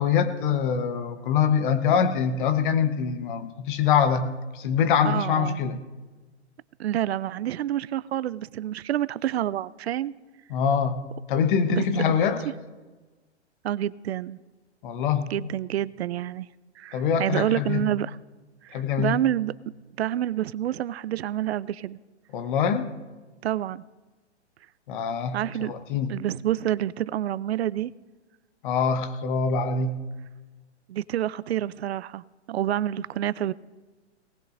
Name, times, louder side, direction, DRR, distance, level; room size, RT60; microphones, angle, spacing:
voice 1, 0.0-4.3 4.5-5.8 10.5-11.0 11.3-12.4 14.8-15.2 16.9-17.8 18.7-19.2 22.3-22.9 24.9-26.1 28.6-30.0, left 7 dB, 45° left, 1.2 m, -24 dB
voice 2, 5.0-5.6 6.8-10.1 11.7-11.9 13.6-14.4 15.3-16.5 16.8-18.2 18.6-19.5 20.0-22.0 23.4-23.8 25.3-25.7 26.1-27.9 30.9-33.5, right 12 dB, 65° right, 0.5 m, -28 dB
18.5 x 18.5 x 2.6 m
hypercardioid pair, 130°, 34 cm